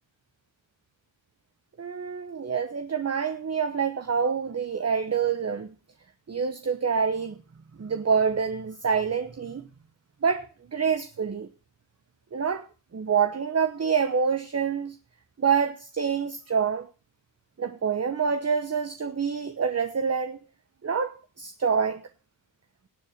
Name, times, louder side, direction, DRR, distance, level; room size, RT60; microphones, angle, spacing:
voice 1, 1.8-5.7 6.3-7.4 7.8-9.6 10.2-11.5 12.3-12.7 12.9-15.0 15.4-16.9 17.6-20.4 20.8-22.0, right 6 dB, 35° right, 1.1 m, -26 dB
18.0 x 7.3 x 6.6 m
cardioid pair, 85°, 47 cm